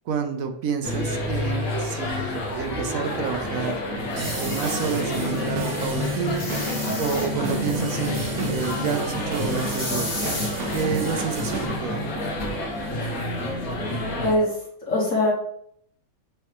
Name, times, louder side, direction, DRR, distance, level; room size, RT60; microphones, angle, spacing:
voice 1, 0.1-3.8 4.3-6.5 7.0-10.3 10.7-12.1, right 5 dB, 70° right, 5 dB, 1.1 m, -29 dB
sound 1, 0.8-14.3, left 1 dB, 75° left, 1.7 m, -28 dB
sound 2, 4.1-4.8 6.3-7.3 9.6-10.5, left 2 dB, 40° left, 1.5 m, -33 dB
sound 3, 4.2-11.7, right 4 dB, 90° right, 1.5 m, -34 dB
voice 2, 14.2-15.3, left 1 dB, 60° left, -6 dB, 1.8 m, -23 dB
6.3 x 3.4 x 4.7 m, 0.69 s
omnidirectional pair, 1.5 m